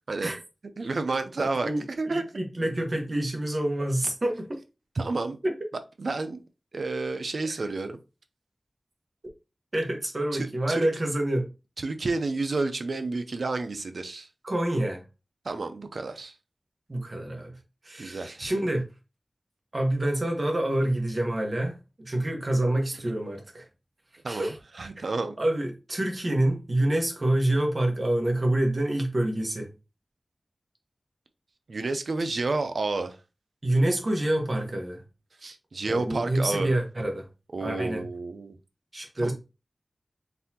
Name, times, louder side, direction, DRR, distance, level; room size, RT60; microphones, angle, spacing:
voice 1, 0.1-0.4 0.8-1.7 2.0-2.2 5.0-5.4 6.0-6.4 6.7-8.0 10.3-10.9 11.8-14.3 15.4-16.3 18.0-18.5 24.2-25.4 31.7-33.2 35.4-36.8 37.5-38.6 39.2-39.3, right 3 dB, 80° right, 0.6 m, -30 dB
voice 2, 1.6-4.6 5.4-5.5 9.7-11.5 14.4-15.0 16.9-17.6 17.8-18.9 19.7-23.7 24.3-24.6 25.0-25.1 25.4-29.7 33.6-35.0 35.9-37.3 37.6-38.0 38.9-39.3, right 1 dB, 40° right, 1.2 m, -27 dB
4.0 x 3.7 x 2.9 m
wide cardioid pair, 80°, 0 cm